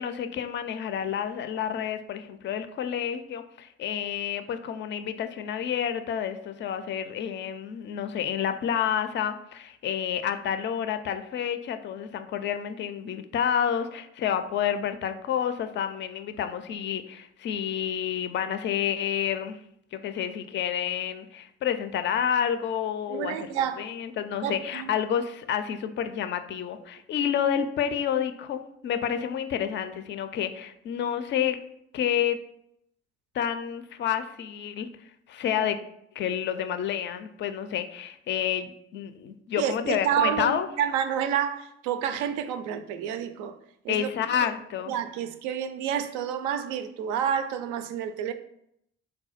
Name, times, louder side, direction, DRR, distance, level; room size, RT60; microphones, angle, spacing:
voice 1, 0.0-19.6 19.9-23.4 23.8-31.6 31.9-32.4 33.3-34.9 35.3-35.8 36.2-40.7 43.9-44.9, left 9 dB, 35° left, 0.4 m, -29 dB
voice 2, 23.1-23.9 24.4-24.9 35.5-35.7 39.6-43.6 43.8-44.1 44.4-44.5 44.9-48.3, right 9 dB, 60° right, 0.4 m, -29 dB
4.1 x 2.2 x 4.1 m
figure-of-eight pair, 45°, 33 cm